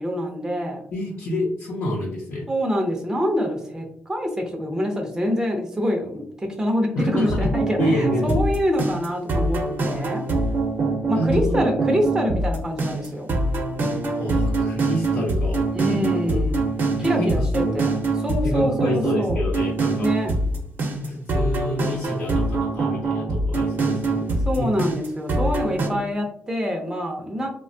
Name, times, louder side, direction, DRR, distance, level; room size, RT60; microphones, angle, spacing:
voice 1, 0.0-0.8 2.5-10.2 11.1-13.4 15.7-16.7 17.0-19.4 20.0-20.3 24.5-27.5, equal, 15° right, 2 dB, 0.5 m, -25 dB
voice 2, 0.9-2.5 6.9-7.5 7.8-8.4 11.1-11.6 14.2-16.0 16.3-16.4 17.0-17.8 18.4-20.1 21.0-24.2 24.5-24.7, left 1 dB, 75° left, -6 dB, 0.7 m, -28 dB
sound 1, 7.1-25.9, right 2 dB, 50° right, 0.7 m, -24 dB
3.0 x 2.2 x 2.6 m, 0.65 s
cardioid pair, 90°, 4 cm